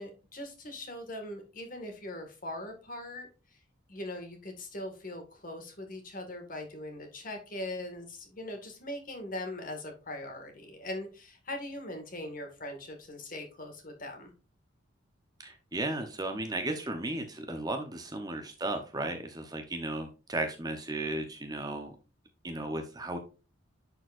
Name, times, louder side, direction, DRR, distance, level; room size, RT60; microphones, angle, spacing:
voice 1, 0.0-3.6 3.9-14.3, left 1 dB, 40° left, 4 dB, 1.9 m, -41 dB
voice 2, 15.4-21.9 22.4-23.2, right 2 dB, 20° right, 5 dB, 0.9 m, -35 dB
10.5 x 4.5 x 2.5 m, 0.33 s
head